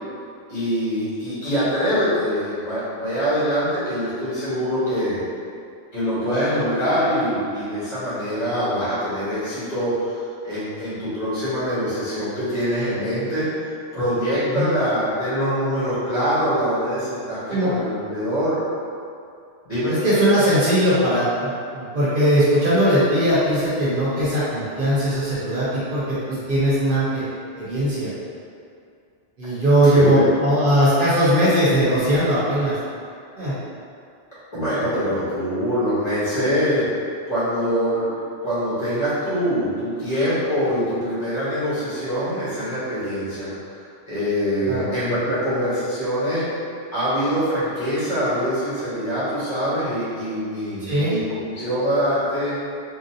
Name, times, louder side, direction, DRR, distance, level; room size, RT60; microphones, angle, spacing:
voice 1, 0.5-5.2 5.9-13.5 13.9-18.6 19.6-20.0 29.9-30.3 34.5-36.9 37.3-43.5 44.1-46.5 46.9-52.5, equal, 40° left, -12 dB, 1.2 m, -24 dB
voice 2, 19.9-27.2 27.5-28.1 29.4-32.8 33.4-33.5 44.6-44.9 50.8-51.1, equal, 55° right, -10 dB, 1.0 m, -19 dB
3.7 x 2.3 x 2.7 m, 2.4 s
omnidirectional pair, 1.1 m